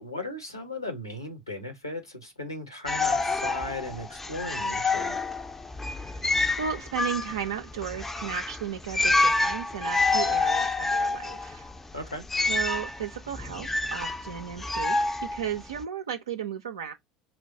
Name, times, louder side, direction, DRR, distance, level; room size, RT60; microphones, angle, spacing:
voice 1, 0.0-5.2 11.9-12.2, left 2 dB, 90° left, 0.8 m, -37 dB
sound 1, 2.9-15.8, left 3 dB, 10° left, 0.4 m, -28 dB
voice 2, 5.9-6.2 6.6-11.7 12.5-16.9, right 8 dB, 75° right, 0.4 m, -35 dB
4.4 x 2.1 x 2.6 m
figure-of-eight pair, 65°, 2 cm